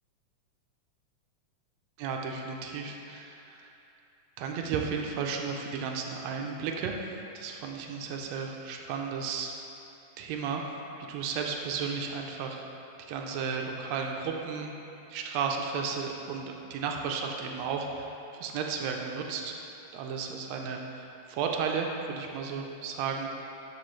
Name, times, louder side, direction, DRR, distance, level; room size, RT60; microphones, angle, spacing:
voice 1, 2.0-3.7 4.4-7.0 7.3-9.5 10.2-10.6 11.0-12.7 13.0-14.7 15.1-19.5 19.9-23.3, right 5 dB, 80° right, 2 dB, 1.6 m, -34 dB
12.0 x 4.4 x 3.1 m, 2.8 s
omnidirectional pair, 3.5 m